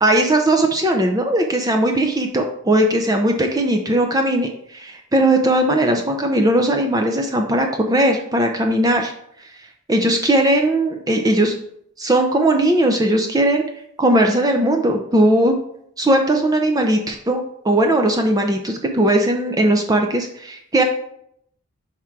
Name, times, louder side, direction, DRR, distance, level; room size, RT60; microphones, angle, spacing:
voice 1, 0.0-9.1 9.9-11.5 12.0-13.6 14.0-15.5 16.0-20.8, right 1 dB, 15° right, 3 dB, 0.5 m, -18 dB
5.8 x 3.6 x 4.6 m, 0.71 s
head